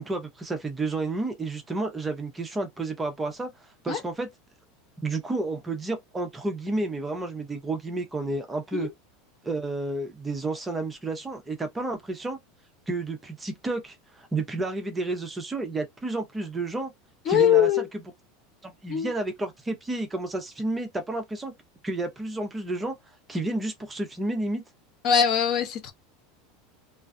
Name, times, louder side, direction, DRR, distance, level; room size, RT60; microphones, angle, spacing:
voice 1, 0.0-3.5 3.8-4.3 5.0-8.9 9.4-12.4 12.9-16.9 17.3-17.9 18.6-21.5 21.8-22.9 23.3-24.6, right 2 dB, 10° right, 0.5 m, -31 dB
voice 2, 17.3-17.9 18.9-19.1 25.0-25.9, left 8 dB, 40° left, 0.6 m, -22 dB
2.4 x 2.2 x 2.5 m
supercardioid pair, 150°, 0 cm